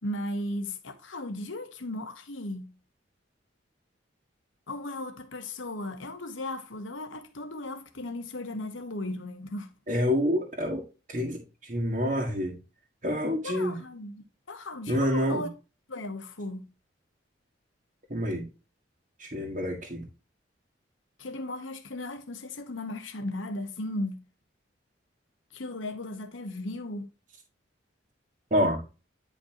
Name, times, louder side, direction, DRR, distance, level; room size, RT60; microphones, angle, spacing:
voice 1, 0.0-2.7 4.7-9.7 13.4-15.5 15.9-16.7 21.2-24.2 25.5-27.1, left 1 dB, 80° left, 1.2 m, -36 dB
voice 2, 9.9-12.6 13.0-13.8 14.9-15.5 18.1-18.5 19.2-20.1 28.5-28.8, equal, 40° right, 1.8 m, -28 dB
10.0 x 5.2 x 2.9 m
head